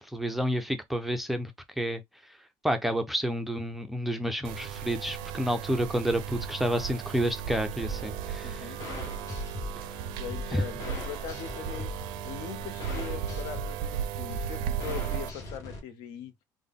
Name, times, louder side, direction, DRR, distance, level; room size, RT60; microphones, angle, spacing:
voice 1, 0.0-1.5 1.8-2.0 2.6-8.6 10.5-10.6, equal, ahead, 0.4 m, -29 dB
sound 1, 4.4-15.3, right 9 dB, 85° right, 0.4 m, -36 dB
sound 2, 7.8-15.8, left 2 dB, 45° left, 1.1 m, -40 dB
voice 2, 8.4-8.8 10.1-11.9 12.2-16.3, left 8 dB, 70° left, 0.7 m, -41 dB
3.6 x 2.1 x 3.5 m
cardioid pair, 160°, 8 cm